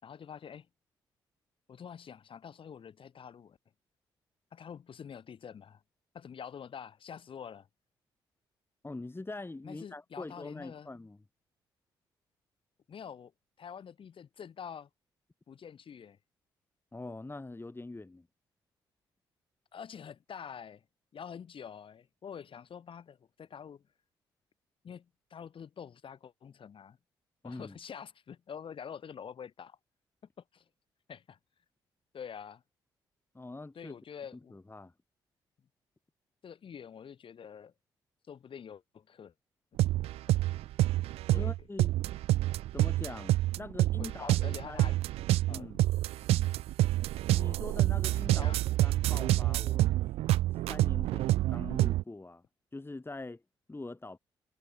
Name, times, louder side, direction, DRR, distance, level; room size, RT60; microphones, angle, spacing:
voice 1, 0.0-0.7 1.7-3.6 4.5-5.8 6.1-7.7 9.6-10.9 12.9-13.3 13.6-14.9 15.5-16.2 19.7-20.8 21.1-23.8 24.8-27.0 27.4-29.8 30.4-30.6 31.1-31.4 32.1-32.6 33.7-34.6 36.4-37.7 38.3-39.3 41.3-41.5 44.0-45.0 45.5-45.7 46.3-46.5 48.3-48.6, left 7 dB, 55° left, 7.8 m, -46 dB
voice 2, 8.8-11.2 16.9-18.3 27.4-27.8 33.3-33.9 34.5-34.9 41.3-41.9 42.7-45.0 45.5-45.8 47.3-48.5 48.8-49.9 50.7-52.4 52.7-53.4 53.7-54.2, left 2 dB, 20° left, 5.8 m, -43 dB
sound 1, 39.8-52.0, right 16 dB, 75° right, 0.4 m, -28 dB
hypercardioid pair, 50°, 10 cm